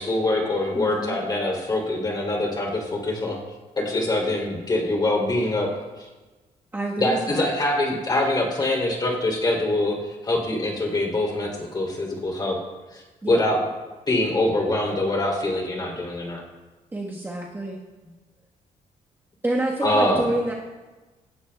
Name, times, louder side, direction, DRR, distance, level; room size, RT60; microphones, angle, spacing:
voice 1, 0.0-3.4 3.8-5.7 7.0-12.6 12.9-13.6 14.1-16.4 19.8-20.3, left 1 dB, 30° left, -1 dB, 3.0 m, -24 dB
voice 2, 0.7-1.2 6.7-7.5 13.2-13.4 16.9-17.8 19.4-20.5, right 2 dB, 15° right, -3 dB, 1.3 m, -28 dB
17.5 x 11.5 x 2.3 m, 1.2 s
cardioid pair, 120°, 14 cm